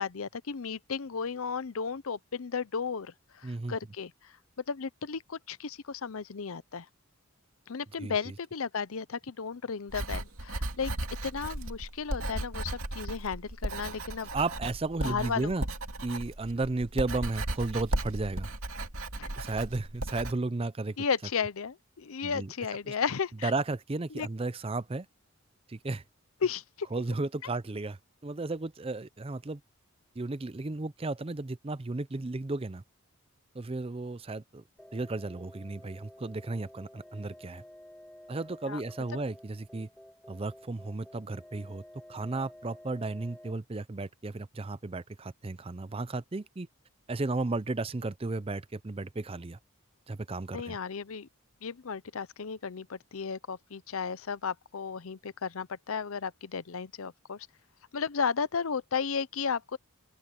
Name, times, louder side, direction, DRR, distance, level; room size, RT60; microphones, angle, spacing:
voice 1, 0.0-4.3 4.7-6.9 7.7-10.9 11.2-14.3 15.0-15.5 19.2-19.3 21.0-23.5 24.1-24.3 26.4-26.9 38.6-38.8 50.5-51.3 51.6-57.5 57.9-59.8, left 6 dB, 75° left, 0.7 m, -34 dB
voice 2, 3.4-3.8 8.0-8.3 14.3-15.6 16.0-18.5 19.4-21.0 22.2-22.5 22.9-23.0 23.4-25.1 25.7-26.0 26.9-29.6 30.2-32.8 33.5-34.6 34.9-37.6 38.3-39.9 40.3-41.8 42.1-46.7 47.1-49.6 50.1-50.8, right 3 dB, 25° right, 0.5 m, -34 dB
Writing, 9.9-20.3, right 1 dB, 80° right, 2.6 m, -36 dB
sound 1, 34.8-43.5, equal, 5° left, 2.7 m, -52 dB
open air
head